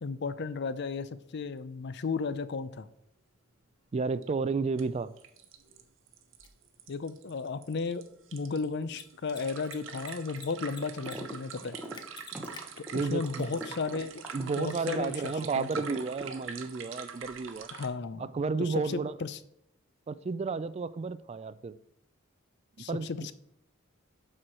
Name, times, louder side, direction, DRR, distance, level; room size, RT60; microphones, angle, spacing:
voice 1, 0.0-2.9 6.9-8.1 8.3-11.8 12.8-15.7 17.7-18.3 18.6-19.4 22.8-23.3, left 4 dB, 55° left, 0.5 m, -34 dB
sound 1, 2.0-2.1 2.4-2.5 4.2-4.3 4.8-4.9 5.2-17.9, right 6 dB, 65° right, 0.9 m, -44 dB
voice 2, 3.9-5.1 12.9-13.5 14.3-17.7 18.2-19.2 20.1-21.8 22.8-23.1, right 4 dB, 30° right, 0.3 m, -32 dB
Mechanisms, 6.4-6.5 8.8-9.0 9.3-9.4 9.7-10.5 10.7-11.2 11.4-11.5 11.9-12.6, left 5 dB, 20° left, 0.7 m, -46 dB
sound 2, 11.1-11.4 11.6-15.4 15.8-16.7, right 1 dB, 5° right, 0.9 m, -42 dB
7.7 x 4.4 x 6.2 m
head